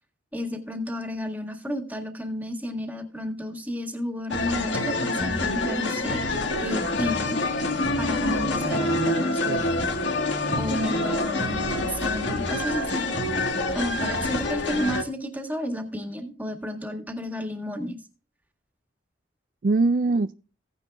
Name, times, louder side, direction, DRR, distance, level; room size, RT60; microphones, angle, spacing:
voice 1, 0.3-7.4 8.0-9.8 10.6-13.1 13.7-18.0, left 1 dB, 10° right, 1.9 m, -32 dB
sound 1, 4.3-15.0, left 2 dB, 75° left, 1.6 m, -26 dB
voice 2, 8.6-9.6 19.6-20.3, right 3 dB, 45° right, 0.4 m, -25 dB
16.0 x 9.8 x 2.2 m
head